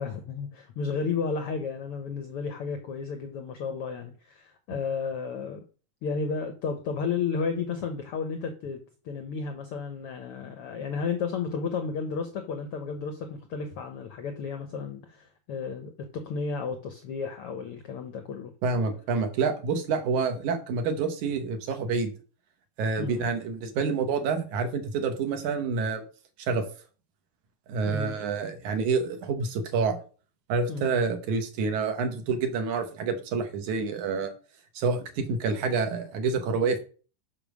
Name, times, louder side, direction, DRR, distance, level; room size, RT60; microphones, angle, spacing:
voice 1, 0.0-5.6 6.0-18.5 23.0-23.3 27.9-28.2 30.7-31.0, left 5 dB, 80° left, 7 dB, 1.3 m, -33 dB
voice 2, 18.6-22.1 22.8-26.0 26.4-26.6 27.7-30.0 30.5-34.3 34.8-36.8, right 4 dB, 75° right, 6 dB, 2.6 m, -28 dB
7.1 x 5.1 x 6.2 m, 0.39 s
omnidirectional pair, 3.6 m